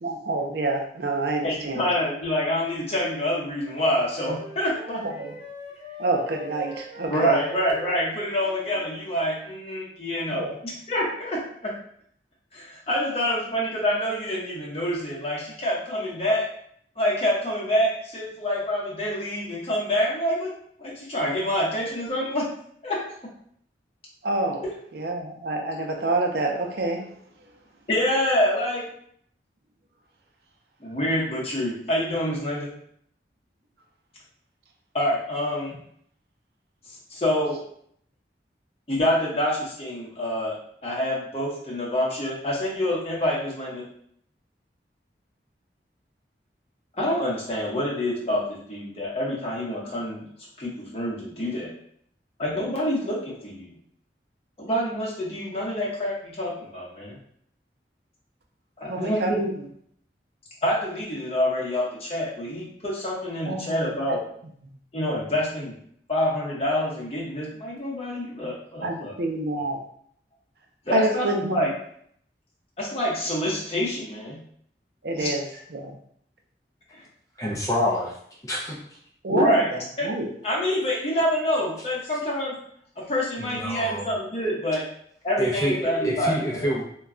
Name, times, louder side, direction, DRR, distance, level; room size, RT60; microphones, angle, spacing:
voice 1, 0.0-1.9 5.0-5.3 6.0-7.4 10.3-10.6 24.2-24.6 24.9-27.1 58.8-59.5 63.4-64.2 68.8-69.8 70.9-71.6 75.0-75.4 75.7-75.9 79.2-80.3, right 2 dB, 65° right, 2 dB, 0.5 m, -27 dB
voice 2, 1.4-5.0 7.1-11.7 12.5-16.5 17.0-20.5 20.8-22.5 22.8-23.0 27.9-28.9 30.8-32.7 34.9-35.8 37.1-37.6 38.9-40.6 40.8-43.8 47.0-50.2 50.6-51.7 52.4-53.7 54.6-57.2 58.8-59.4 60.6-64.2 64.9-65.7 66.1-69.1 70.9-71.7 72.8-74.4 75.2-75.3 76.9-77.0 79.3-79.7 80.0-80.1 80.4-82.6 83.0-84.8 85.2-86.7, left 1 dB, 35° left, -5 dB, 0.8 m, -26 dB
Wind instrument woodwind instrument, 3.4-9.1, left 2 dB, 25° right, 1.0 m, -42 dB
voice 3, 77.4-78.2 78.4-78.8 83.4-84.0 85.4-86.8, equal, 20° left, -3 dB, 0.4 m, -26 dB
2.3 x 2.2 x 3.6 m, 0.65 s
head